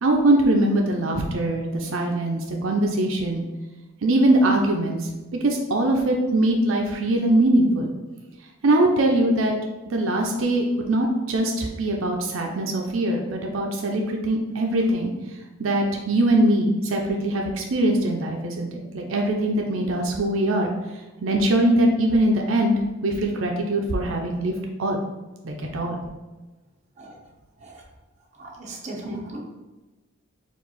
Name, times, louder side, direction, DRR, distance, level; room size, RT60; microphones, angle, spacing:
voice 1, 0.0-3.5 4.0-7.9 8.6-9.5 9.9-15.1 15.6-20.7 21.2-22.7 23.0-24.5 24.8-25.0 25.4-26.0, right 1 dB, 80° right, 1 dB, 0.5 m, -22 dB
voice 2, 28.3-29.5, right 1 dB, 35° right, -3 dB, 0.8 m, -37 dB
4.5 x 2.4 x 4.0 m, 1.2 s
head